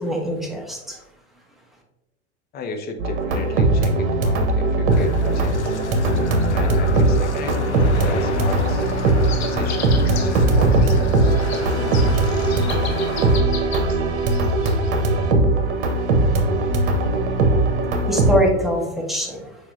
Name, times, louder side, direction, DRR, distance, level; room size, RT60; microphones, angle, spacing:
voice 1, 0.0-1.0 17.1-17.2 18.0-19.5, equal, ahead, -1 dB, 1.2 m, -23 dB
voice 2, 2.5-5.7 6.5-11.6, left 3 dB, 30° left, 5 dB, 0.8 m, -35 dB
sound 1, 3.0-18.4, right 2 dB, 55° right, 1.1 m, -19 dB
sound 2, 4.9-13.4, left 6 dB, 85° left, 0.5 m, -32 dB
sound 3, 8.8-14.9, left 6 dB, 65° left, 0.9 m, -37 dB
7.1 x 5.0 x 2.7 m, 0.96 s
figure-of-eight pair, 85°, 34 cm